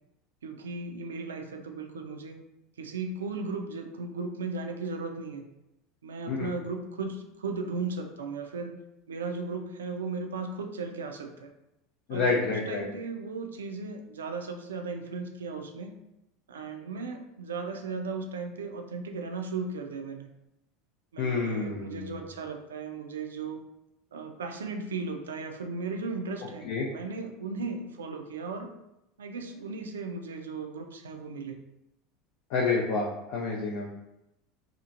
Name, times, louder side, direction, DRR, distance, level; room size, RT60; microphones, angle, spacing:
voice 1, 0.4-2.4 2.8-5.5 6.0-8.7 9.1-11.5 12.1-15.9 16.5-20.3 21.1-23.6 24.1-26.7 26.9-28.7 29.2-31.6, right 4 dB, 85° right, 5 dB, 0.3 m, -36 dB
voice 2, 12.1-12.9 21.2-22.3 26.6-26.9 32.5-33.9, left 4 dB, 65° left, -3 dB, 0.4 m, -29 dB
2.9 x 2.4 x 2.5 m, 0.89 s
hypercardioid pair, 85°, 0 cm